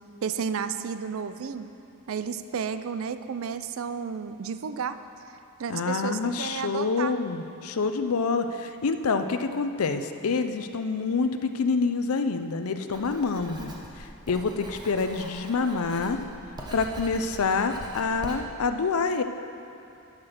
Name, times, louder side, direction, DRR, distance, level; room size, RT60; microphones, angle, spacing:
voice 1, 0.2-1.7 2.1-5.0 5.6-7.1, right 6 dB, 65° right, 11 dB, 0.4 m, -32 dB
voice 2, 5.7-16.2 16.7-19.2, left 4 dB, 80° left, 8 dB, 0.5 m, -27 dB
Writing, 12.9-18.4, right 1 dB, 20° right, 0.9 m, -42 dB
10.0 x 5.9 x 6.5 m, 2.7 s
head